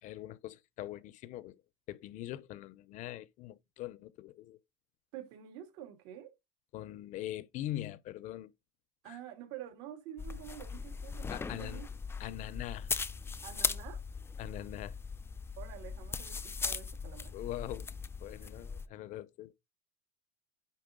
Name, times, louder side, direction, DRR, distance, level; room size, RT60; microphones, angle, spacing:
voice 1, 0.0-1.6 1.9-4.6 6.7-8.5 9.0-9.2 11.3-11.8 12.2-12.9 14.4-15.0 17.3-17.9 18.2-19.5, left 14 dB, 50° left, 0.7 m, -42 dB
voice 2, 5.1-6.3 9.0-11.9 13.4-14.0 15.6-17.3, right 11 dB, 70° right, 2.6 m, -48 dB
sound 1, 10.2-18.9, left 5 dB, 15° left, 0.5 m, -39 dB
10.0 x 3.7 x 3.7 m
supercardioid pair, 120°, 16 cm